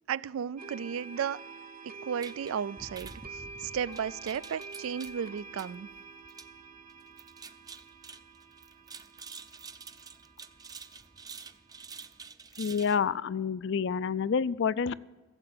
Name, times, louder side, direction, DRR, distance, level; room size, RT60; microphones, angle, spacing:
voice 1, 0.1-1.4 1.8-5.9, right 8 dB, 80° right, 21 dB, 0.4 m, -34 dB
sound 1, 0.6-12.2, right 4 dB, 45° right, 0.9 m, -48 dB
sound 2, 2.2-13.0, right 5 dB, 20° right, 0.5 m, -49 dB
voice 2, 12.6-15.0, left 6 dB, 60° left, 18 dB, 0.4 m, -28 dB
15.5 x 7.8 x 7.6 m, 1.3 s
head